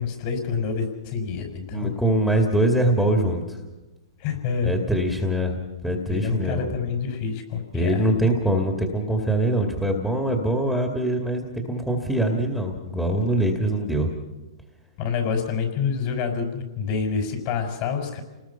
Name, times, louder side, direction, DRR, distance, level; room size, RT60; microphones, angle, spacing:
voice 1, 0.0-1.9 4.2-4.8 6.1-8.1 15.0-18.2, left 6 dB, 45° left, 4 dB, 5.8 m, -27 dB
voice 2, 1.7-3.6 4.6-5.5 5.8-6.7 7.7-14.1, right 1 dB, ahead, 3 dB, 2.3 m, -23 dB
28.5 x 20.0 x 5.8 m, 1.1 s
hypercardioid pair, 130°, 3 cm